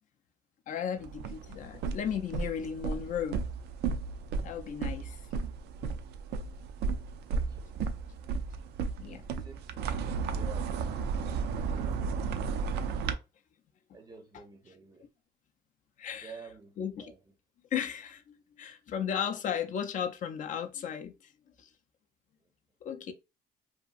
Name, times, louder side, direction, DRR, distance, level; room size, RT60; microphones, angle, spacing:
voice 1, 0.7-3.4 4.4-5.2 9.0-9.2 11.4-11.6 16.0-16.3 16.8-17.1 17.7-21.3 21.6-21.7 22.8-23.1, left 8 dB, 50° left, 0.4 m, -35 dB
sound 1, 1.0-13.1, right 5 dB, 80° right, 0.4 m, -34 dB
voice 2, 7.3-7.9 9.0-10.8 11.5-12.4 13.9-15.1 16.2-17.2, right 5 dB, 25° right, 0.5 m, -51 dB
2.8 x 2.4 x 2.3 m
cardioid pair, 110°, 17 cm